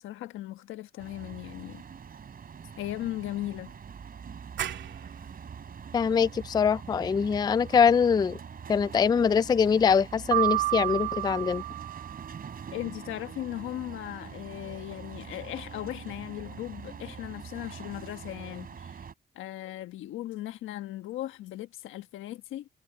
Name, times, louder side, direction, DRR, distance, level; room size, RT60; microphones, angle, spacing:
voice 1, 0.0-1.8 2.8-3.7 12.7-18.9 19.3-22.7, left 14 dB, 85° left, 1.3 m, -37 dB
sound 1, 1.0-19.1, right 7 dB, 45° right, 4.0 m, -44 dB
sound 2, 4.6-10.0, right 9 dB, 70° right, 2.6 m, -43 dB
voice 2, 5.9-8.4 8.7-11.6, left 6 dB, 20° left, 0.3 m, -23 dB
Piano, 10.3-12.5, right 21 dB, 90° right, 1.0 m, -29 dB
cardioid pair, 90°, 20 cm